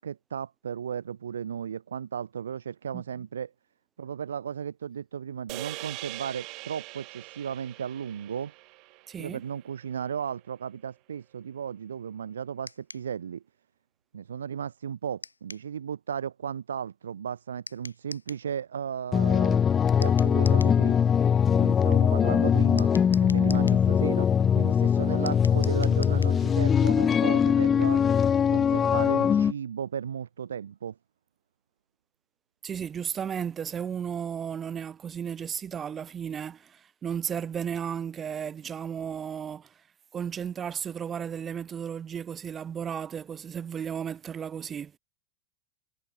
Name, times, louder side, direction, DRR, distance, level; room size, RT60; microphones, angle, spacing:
voice 1, 0.0-3.5 4.0-8.5 9.2-13.4 14.1-19.7 20.0-21.0 21.6-22.9 23.2-24.3 24.5-28.0 28.5-31.0, right 8 dB, 65° right, 2.6 m, -35 dB
sound 1, 5.5-9.9, right 25 dB, 40° right, 2.3 m, -42 dB
voice 2, 9.1-9.4 32.6-39.7 40.1-44.9, right 8 dB, 25° right, 1.1 m, -34 dB
sound 2, 12.7-13.1 15.2-15.7 17.7-18.5 20.0-20.8 22.8-23.8 25.3-26.4, left 4 dB, 80° left, 3.9 m, -44 dB
sound 3, 19.1-29.5, left 7 dB, 20° left, 0.3 m, -22 dB
figure-of-eight pair, 90°, 0 cm